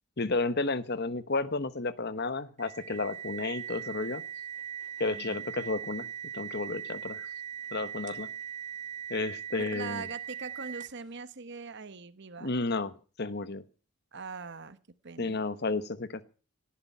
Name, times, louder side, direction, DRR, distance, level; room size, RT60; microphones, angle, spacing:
voice 1, 0.2-4.2 5.0-6.1 6.3-7.3 7.7-8.3 9.1-10.1 12.4-12.9 13.2-13.6 15.2-16.2, left 3 dB, 50° left, 1.1 m, -32 dB
sound 1, 2.6-11.1, right 9 dB, 35° right, 1.6 m, -40 dB
voice 2, 5.1-5.4 9.6-12.5 14.1-14.8 15.0-15.4, right 4 dB, 55° right, 1.1 m, -42 dB
18.0 x 11.5 x 5.6 m
head